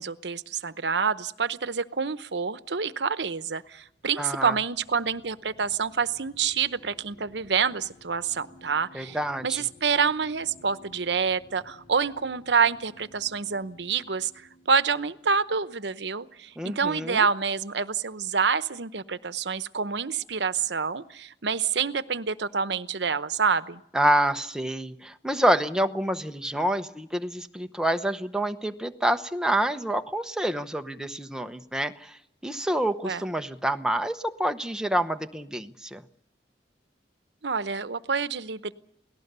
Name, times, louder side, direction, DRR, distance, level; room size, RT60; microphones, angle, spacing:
voice 1, 0.0-9.2 9.4-14.3 14.7-23.8 33.0-33.2 37.4-38.7, right 6 dB, 75° right, 14 dB, 0.9 m, -27 dB
sound 1, 3.1-16.8, left 1 dB, 25° left, 4.5 m, -56 dB
voice 2, 4.2-4.5 8.9-9.6 16.6-17.3 23.9-32.2 32.4-36.0, right 1 dB, 5° right, 7 dB, 0.9 m, -27 dB
28.5 x 18.5 x 6.8 m, 0.77 s
head